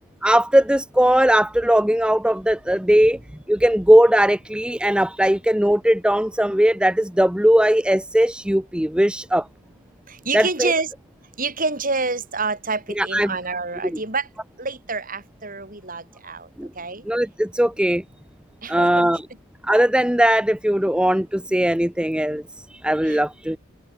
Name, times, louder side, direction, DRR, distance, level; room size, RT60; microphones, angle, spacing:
voice 1, 0.2-3.2 3.5-9.5 10.3-10.7 13.0-13.3 13.8-14.0 16.6-16.7 17.0-18.0 18.7-19.2 19.6-23.6, equal, 5° right, 0.8 m, -19 dB
voice 2, 10.1-10.9 11.4-14.3 14.6-16.5 16.8-17.1 18.6-19.1 23.1-23.2, right 3 dB, 40° right, 7.0 m, -27 dB
open air
head